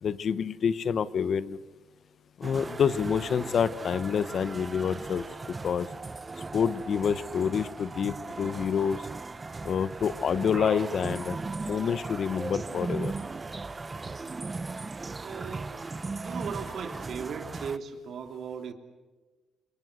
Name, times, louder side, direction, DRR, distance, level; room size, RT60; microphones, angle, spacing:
voice 1, 0.0-1.6 2.4-5.2 5.6-5.9 6.5-9.1 9.6-11.4 11.7-13.1, left 7 dB, 55° left, 16 dB, 1.0 m, -27 dB
sound 1, 2.4-17.8, right 3 dB, 25° right, 0.8 m, -37 dB
voice 2, 15.2-15.7 16.2-18.7, right 6 dB, 65° right, 6 dB, 3.1 m, -37 dB
27.0 x 23.0 x 8.1 m, 1.3 s
cardioid pair, 90°, 0 cm